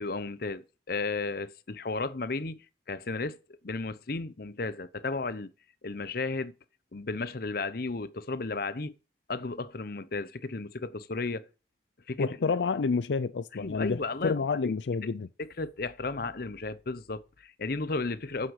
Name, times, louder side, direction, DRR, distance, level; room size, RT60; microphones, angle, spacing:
voice 1, 0.0-2.6 2.9-3.4 3.6-5.5 5.8-6.5 6.9-8.9 9.3-11.5 12.1-12.5 13.6-14.7 15.4-18.5, left 3 dB, 55° left, 0.8 m, -34 dB
voice 2, 12.2-15.3, left 4 dB, 85° left, 0.5 m, -29 dB
9.5 x 7.6 x 6.5 m
head